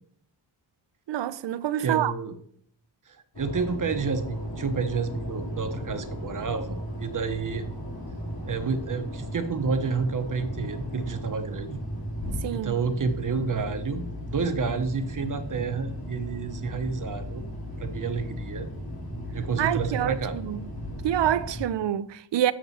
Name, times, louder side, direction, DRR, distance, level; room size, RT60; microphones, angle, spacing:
voice 1, 1.1-2.1 12.4-12.8 19.6-20.7 21.0-22.5, right 11 dB, 70° right, 0.5 m, -27 dB
voice 2, 1.8-2.4 3.1-7.7 8.5-11.8 12.5-17.4 17.8-18.7 19.3-20.4, right 5 dB, 45° right, 0.8 m, -30 dB
sound 1, 3.3-21.6, equal, 55° left, 2.3 m, -36 dB
7.4 x 5.9 x 4.1 m
wide cardioid pair, 135°, 45 cm